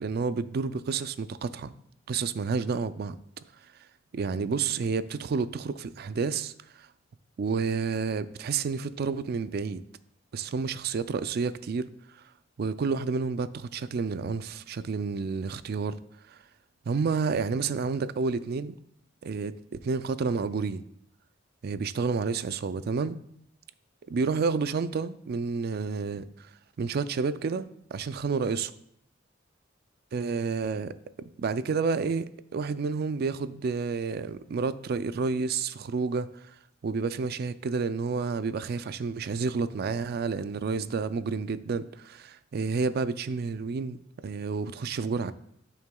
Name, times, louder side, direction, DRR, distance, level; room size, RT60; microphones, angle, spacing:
voice 1, 0.0-1.7 2.1-3.2 4.1-6.9 7.4-9.8 10.3-11.9 12.6-16.0 16.3-16.4 16.9-18.7 19.2-20.8 21.6-23.2 24.1-26.5 26.8-28.7 30.1-36.4 36.8-44.0 44.2-45.3, right 5 dB, 55° right, 0.4 m, -30 dB
12.5 x 5.8 x 2.3 m
head